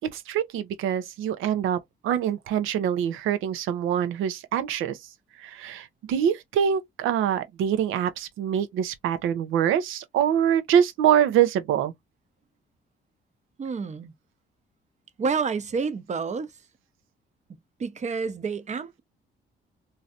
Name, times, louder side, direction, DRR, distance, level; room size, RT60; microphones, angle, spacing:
voice 1, 0.1-5.0 5.4-11.9, right 9 dB, 90° right, 0.7 m, -24 dB
voice 2, 13.6-14.1 15.2-16.5 17.8-19.0, right 5 dB, 35° right, 0.7 m, -29 dB
3.1 x 2.7 x 2.4 m
cardioid pair, 90°, 20 cm